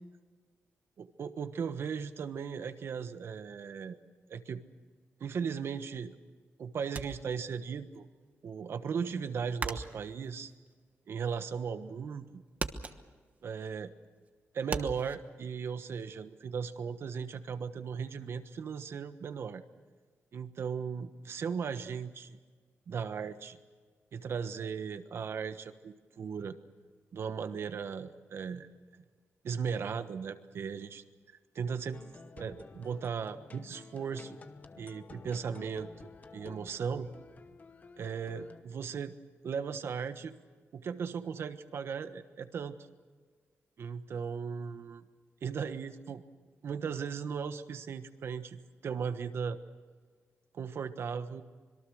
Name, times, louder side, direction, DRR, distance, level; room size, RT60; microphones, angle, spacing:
voice 1, 1.0-4.0 4.3-4.6 5.2-6.1 6.6-8.0 8.4-10.5 11.1-12.4 13.4-13.9 14.5-19.6 20.3-22.4 22.9-23.6 24.1-26.6 27.1-29.0 29.4-32.0 32.4-34.4 34.8-37.1 38.0-39.1 39.4-40.4 40.7-42.8 43.8-45.0 45.4-46.2 46.6-49.6 50.5-51.4, right 6 dB, 60° right, 10 dB, 1.3 m, -37 dB
sound 1, 7.0-8.0 8.3-11.5 11.9-12.3 12.5-15.2, right 4 dB, 35° right, 1.2 m, -40 dB
sound 2, 31.9-38.6, left 4 dB, 35° left, 1.0 m, -52 dB
25.5 x 22.5 x 6.5 m, 1.5 s
wide cardioid pair, 160°, 5 cm